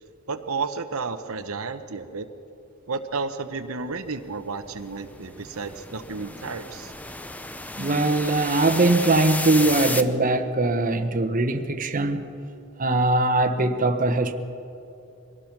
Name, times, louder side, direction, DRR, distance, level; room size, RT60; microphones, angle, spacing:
voice 1, 0.3-2.3 2.9-6.9, right 4 dB, 85° right, 0.9 m, -32 dB
sound 1, 4.0-10.0, left 2 dB, 5° left, 0.6 m, -33 dB
voice 2, 7.8-12.3 12.8-14.3, right 2 dB, 40° right, 1.0 m, -21 dB
24.0 x 18.5 x 6.0 m
head